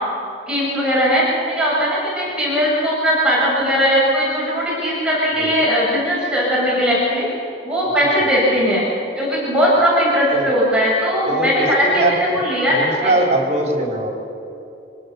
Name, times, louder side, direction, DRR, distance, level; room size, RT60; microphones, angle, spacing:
voice 1, 0.5-7.3 7.6-8.9 9.2-12.0 12.3-13.2, equal, 5° right, -7 dB, 7.8 m, -18 dB
voice 2, 11.3-12.4 12.7-14.1, right 1 dB, 40° right, 0 dB, 4.7 m, -21 dB
26.5 x 19.0 x 7.0 m, 2.7 s
head